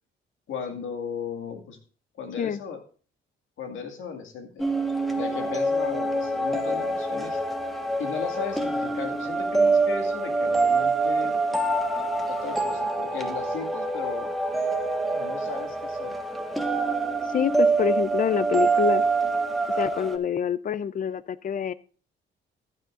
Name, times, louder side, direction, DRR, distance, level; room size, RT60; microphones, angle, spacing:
voice 1, 0.5-1.8 2.2-2.8 3.6-4.6 5.1-7.4 8.0-11.4 12.3-14.3 15.1-16.2, left 5 dB, 75° left, 5 dB, 2.2 m, -36 dB
sound 1, 4.6-20.2, right 3 dB, ahead, 1.4 m, -25 dB
voice 2, 17.3-19.0 19.8-21.7, left 8 dB, 45° left, 18 dB, 0.6 m, -26 dB
14.5 x 9.5 x 2.6 m, 0.40 s
cardioid pair, 90°, 20 cm